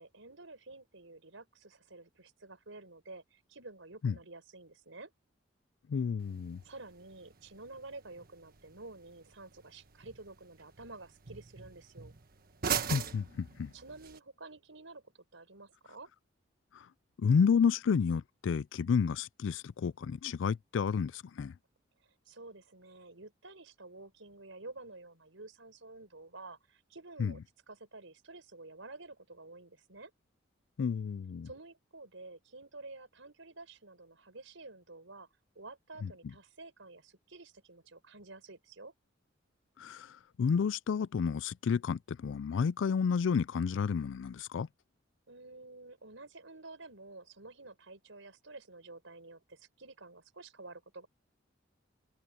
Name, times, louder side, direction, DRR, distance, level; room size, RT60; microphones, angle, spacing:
voice 1, 0.0-5.1 6.6-12.1 13.7-16.1 22.2-27.4 27.7-30.1 31.4-35.3 35.5-38.9 45.3-51.1, right 2 dB, 80° right, 4.9 m, -50 dB
voice 2, 5.9-6.6 12.9-13.7 17.2-21.5 27.2-27.3 30.8-31.5 36.0-36.1 39.8-44.7, left 6 dB, 70° left, 0.4 m, -30 dB
sound 1, 6.2-14.2, right 7 dB, 50° right, 1.5 m, -42 dB
head